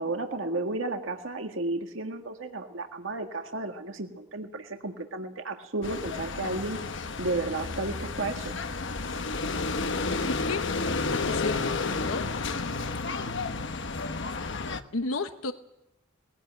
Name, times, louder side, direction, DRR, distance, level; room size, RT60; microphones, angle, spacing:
voice 1, 0.0-6.8 7.2-8.5, right 2 dB, 70° right, 4 dB, 1.8 m, -33 dB
sound 1, 5.8-14.8, left 3 dB, 60° left, 1.2 m, -31 dB
voice 2, 10.3-10.6 11.1-12.3 14.9-15.5, left 3 dB, 85° left, 9 dB, 1.1 m, -32 dB
21.0 x 16.5 x 9.1 m, 0.88 s
head